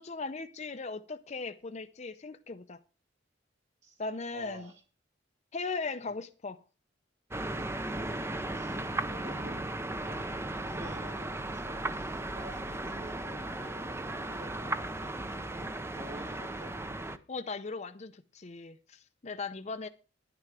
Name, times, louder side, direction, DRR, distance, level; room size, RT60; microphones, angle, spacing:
voice 1, 0.0-2.8 4.0-4.7 5.5-6.6 17.3-19.9, left 4 dB, 35° left, 0.6 m, -38 dB
voice 2, 4.3-4.8 6.0-6.1 8.0-8.1 8.5-8.8 9.0-16.8, right 1 dB, 65° right, 2.6 m, -50 dB
sound 1, 7.3-17.2, right 2 dB, 15° right, 0.6 m, -36 dB
11.0 x 9.9 x 4.9 m
head